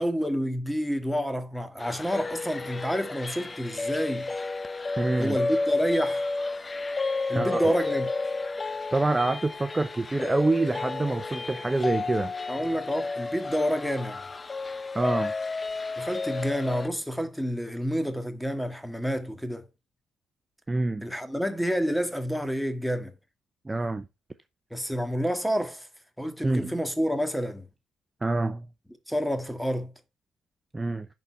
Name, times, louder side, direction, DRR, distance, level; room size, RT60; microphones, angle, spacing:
voice 1, 0.0-4.3 5.2-6.3 7.3-8.1 12.5-14.2 16.0-19.6 21.0-23.1 24.7-25.9 26.2-27.7 29.1-29.9, equal, ahead, 1.7 m, -29 dB
sound 1, 1.8-16.9, left 3 dB, 25° left, 0.6 m, -32 dB
voice 2, 5.0-5.4 7.3-7.7 8.9-12.4 14.9-15.3 20.7-21.0 23.6-24.0 26.4-26.7 28.2-28.7 30.7-31.1, right 2 dB, 20° right, 0.6 m, -26 dB
10.5 x 4.1 x 5.7 m
cardioid pair, 90°, 0 cm